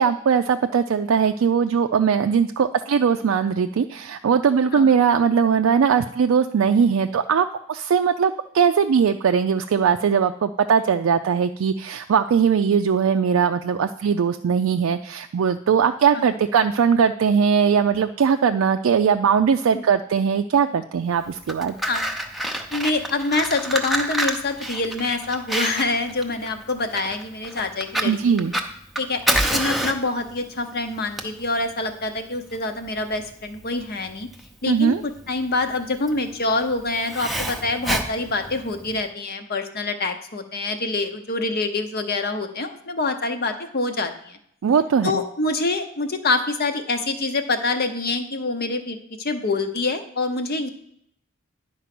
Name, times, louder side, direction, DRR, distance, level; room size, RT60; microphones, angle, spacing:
voice 1, 0.0-21.8 28.0-28.5 34.7-35.0 44.6-45.2, right 6 dB, 75° right, 6 dB, 0.4 m, -20 dB
Fire, 21.3-39.0, right 1 dB, ahead, 0.6 m, -28 dB
voice 2, 22.7-28.6 29.0-34.3 34.6-44.4 45.0-50.7, left 3 dB, 50° left, 7 dB, 0.9 m, -26 dB
10.5 x 4.6 x 6.0 m, 0.72 s
head